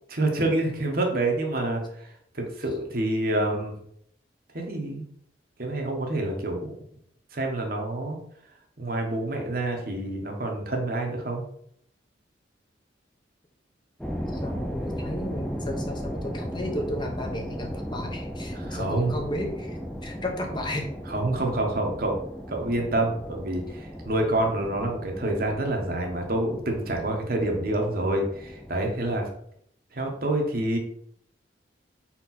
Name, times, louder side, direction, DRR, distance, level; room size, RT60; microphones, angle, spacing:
voice 1, 0.1-3.7 4.5-5.0 5.6-6.7 7.3-8.2 8.8-11.4 18.5-19.1 21.1-22.2 22.5-29.3 29.9-30.8, right 1 dB, 50° right, 2 dB, 1.2 m, -27 dB
sound 1, 14.0-29.2, equal, ahead, 0.5 m, -36 dB
voice 2, 14.3-20.9, left 1 dB, 25° left, 2 dB, 0.8 m, -33 dB
5.0 x 4.5 x 4.2 m, 0.69 s
head